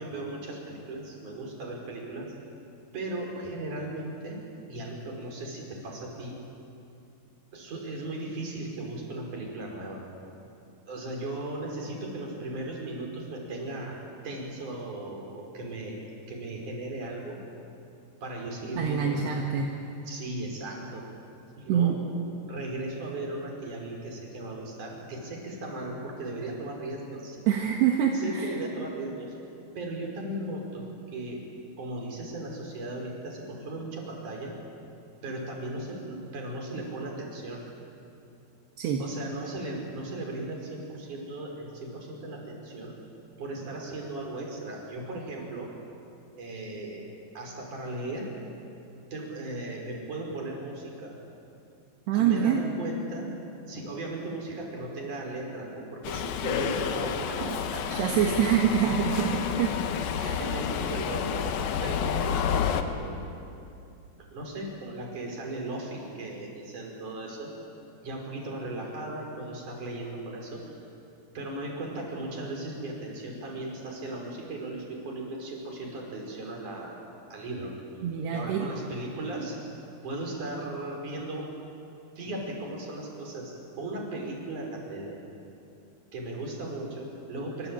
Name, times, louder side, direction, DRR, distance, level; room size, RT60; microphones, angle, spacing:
voice 1, 0.0-2.3 2.9-6.4 7.5-10.0 10.9-14.0 14.2-17.4 18.2-19.3 20.1-21.1 21.6-21.9 22.5-27.4 28.1-29.3 29.8-31.4 31.8-34.5 35.2-37.6 39.0-43.0 43.4-45.7 46.4-47.1 47.3-48.3 49.1-51.1 52.1-53.3 53.7-57.9 58.6-58.7 59.1-59.5 60.4-61.5 61.8-63.2 64.3-67.5 68.0-70.8 71.3-77.0 77.3-77.7 78.3-79.5 80.0-81.5 82.2-85.2 86.1-87.7, right 2 dB, 45° right, 0 dB, 6.3 m, -37 dB
voice 2, 18.8-19.7 21.7-22.0 27.5-28.5 38.8-39.0 52.1-52.6 57.4-57.5 57.9-59.8 60.2-60.5 78.0-78.7, right 8 dB, 75° right, 1 dB, 3.7 m, -25 dB
Subway metro underground, 56.0-62.8, left 8 dB, 70° left, 2.8 m, -30 dB
26.0 x 25.0 x 8.9 m, 2.6 s
omnidirectional pair, 5.0 m